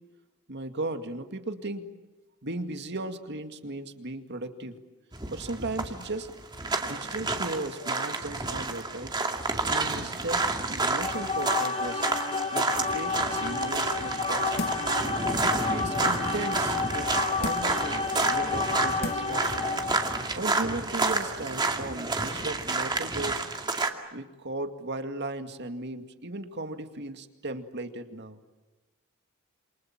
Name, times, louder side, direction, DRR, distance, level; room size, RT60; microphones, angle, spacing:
voice 1, 0.5-1.9 2.4-4.8 5.3-6.3 6.8-9.1 9.7-10.4 10.7-12.0 12.5-14.7 15.4-17.1 17.4-19.7 20.3-23.4 24.1-28.4, right 2 dB, 55° right, 7 dB, 2.2 m, -36 dB
sound 1, 5.1-23.9, right 3 dB, 20° right, 2.3 m, -30 dB
sound 2, 10.8-20.3, left 4 dB, 30° left, 2.3 m, -31 dB
sound 3, 14.6-15.0 15.5-15.6 17.4-17.9 18.6-18.7 19.0-19.4 19.8-19.9, left 2 dB, 50° left, 1.7 m, -35 dB
28.0 x 27.5 x 7.4 m, 1.1 s
head